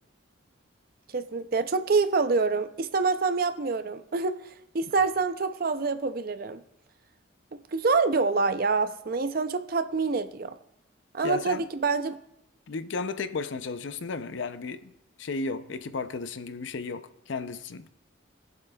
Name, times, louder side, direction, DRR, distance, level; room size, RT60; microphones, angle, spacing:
voice 1, 1.1-6.6 7.7-10.5 11.1-12.2, right 4 dB, 45° right, 0.5 m, -26 dB
voice 2, 11.2-11.6 12.7-14.9 15.2-17.9, left 4 dB, 65° left, 0.5 m, -34 dB
20.5 x 7.5 x 2.3 m
head